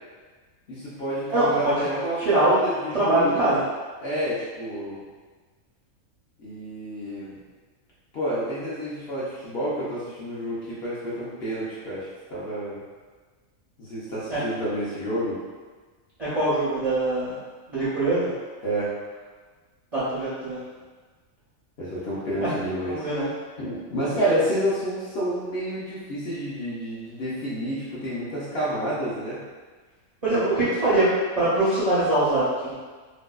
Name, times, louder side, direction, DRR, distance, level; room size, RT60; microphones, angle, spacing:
voice 1, 0.7-3.6 4.0-5.0 6.4-7.4 8.1-12.8 13.8-15.4 18.6-19.0 21.8-23.1 23.6-29.4 30.3-30.4 30.8-30.9, right 1 dB, 60° left, -9 dB, 0.7 m, -29 dB
voice 2, 1.3-1.8 2.2-2.6 2.9-3.7 14.3-14.4 16.2-17.4 17.7-18.3 19.9-20.6 22.4-22.5 22.8-23.3 30.2-31.1 31.4-32.7, right 2 dB, 45° right, -12 dB, 0.4 m, -23 dB
2.6 x 2.2 x 2.2 m, 1.4 s
omnidirectional pair, 1.4 m